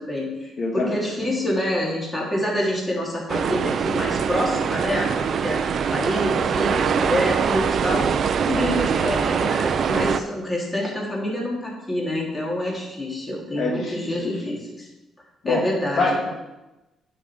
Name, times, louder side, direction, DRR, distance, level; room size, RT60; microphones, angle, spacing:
voice 1, 0.0-5.6 5.9-8.1 8.5-14.9 15.4-16.2, left 1 dB, 15° left, -3 dB, 3.3 m, -27 dB
voice 2, 0.6-1.4 8.5-8.8 13.6-14.3 15.4-15.6 16.0-16.3, left 2 dB, 55° left, -2 dB, 1.8 m, -25 dB
sound 1, 3.3-10.2, right 6 dB, 55° right, 0.6 m, -23 dB
9.4 x 5.3 x 6.2 m, 1.0 s
cardioid pair, 90°, 0 cm